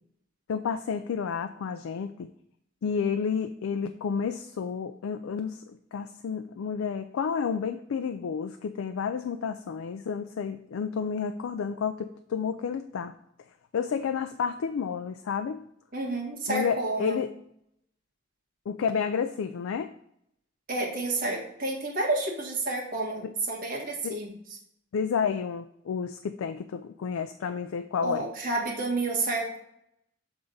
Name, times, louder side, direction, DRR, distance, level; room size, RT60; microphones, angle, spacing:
voice 1, 0.5-2.3 2.8-13.1 13.7-15.6 16.5-17.3 18.7-19.9 23.2-23.3 24.0-24.2 24.9-28.3, left 6 dB, 85° left, 8 dB, 0.4 m, -31 dB
voice 2, 15.9-17.2 20.7-24.3 28.0-29.6, right 2 dB, 45° right, -1 dB, 1.6 m, -30 dB
6.5 x 3.5 x 5.4 m, 0.74 s
head